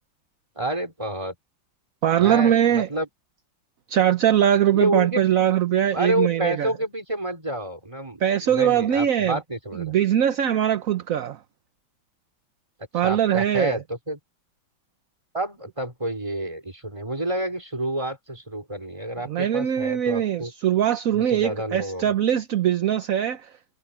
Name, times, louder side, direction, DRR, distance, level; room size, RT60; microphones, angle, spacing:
voice 1, 0.6-1.3 2.2-3.1 4.7-5.2 5.9-9.9 13.0-14.2 15.3-20.5 21.1-22.1, right 1 dB, 15° right, 4.4 m, -29 dB
voice 2, 2.0-2.9 3.9-6.7 8.2-9.4 9.8-11.4 12.9-13.8 19.3-23.5, right 10 dB, 55° right, 1.0 m, -21 dB
omnidirectional pair, 2.1 m